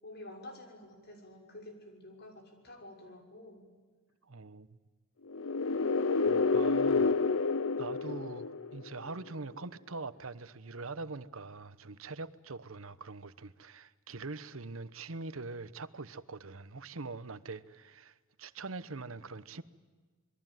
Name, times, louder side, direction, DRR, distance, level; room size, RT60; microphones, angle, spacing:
voice 1, 0.0-3.7, left 1 dB, 50° left, 3 dB, 6.2 m, -49 dB
voice 2, 4.2-4.8 6.3-7.2 7.8-19.6, right 3 dB, 80° right, 14 dB, 1.1 m, -43 dB
sound 1, 5.3-9.1, left 4 dB, 70° left, 0.7 m, -29 dB
27.0 x 22.0 x 9.3 m, 1.4 s
head